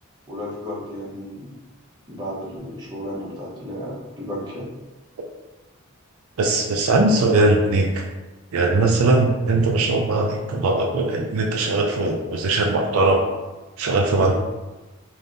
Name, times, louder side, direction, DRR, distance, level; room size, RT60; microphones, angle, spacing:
voice 1, 0.3-1.5 2.1-4.7, equal, 20° right, -7 dB, 0.8 m, -33 dB
voice 2, 6.4-8.0 8.5-13.3 13.8-14.4, right 2 dB, 75° right, 1 dB, 0.4 m, -20 dB
3.4 x 2.6 x 2.5 m, 1.1 s
head